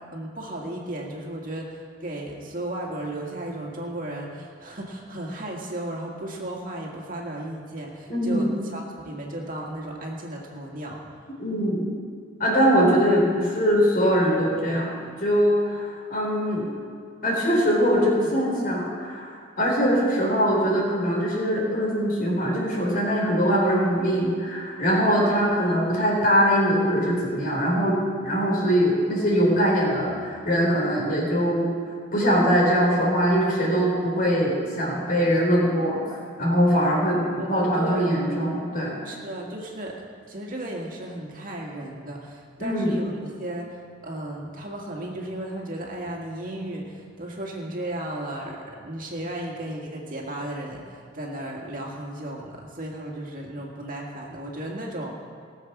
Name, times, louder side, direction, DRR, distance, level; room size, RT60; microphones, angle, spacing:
voice 1, 0.0-11.2 37.1-38.2 39.0-40.0 40.3-55.1, right 1 dB, 45° right, -1 dB, 2.0 m, -35 dB
voice 2, 8.1-8.5 11.4-11.8 12.4-16.6 17.2-31.7 32.1-38.9 42.6-42.9, equal, 50° left, -3 dB, 4.2 m, -22 dB
18.5 x 7.4 x 6.1 m, 2.2 s
head